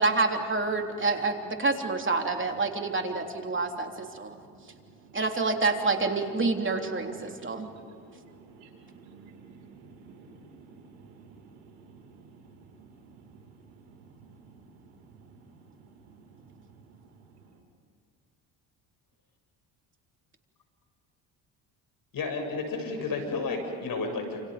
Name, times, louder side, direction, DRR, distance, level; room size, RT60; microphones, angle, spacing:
voice 1, 0.0-4.4 5.1-7.7, right 3 dB, 30° right, 3 dB, 3.6 m, -28 dB
voice 2, 4.5-5.2 6.8-17.1, right 4 dB, 90° right, 2 dB, 5.6 m, -53 dB
voice 3, 22.1-24.4, left 3 dB, 55° left, 4 dB, 7.6 m, -32 dB
29.5 x 28.5 x 5.3 m, 2.2 s
supercardioid pair, 70°, 42 cm